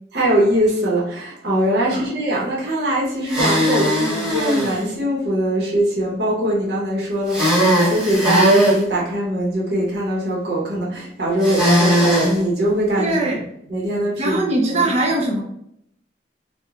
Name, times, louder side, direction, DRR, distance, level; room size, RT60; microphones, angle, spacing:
voice 1, 0.1-13.3 13.7-14.9, right 1 dB, 65° right, -5 dB, 0.9 m, -22 dB
sound 1, 3.3-4.8 7.3-8.8 11.4-12.3, equal, 5° right, 1.0 m, -18 dB
voice 2, 13.0-13.4 14.2-15.4, right 2 dB, 35° right, -1 dB, 0.6 m, -21 dB
3.0 x 2.2 x 2.4 m, 0.73 s
head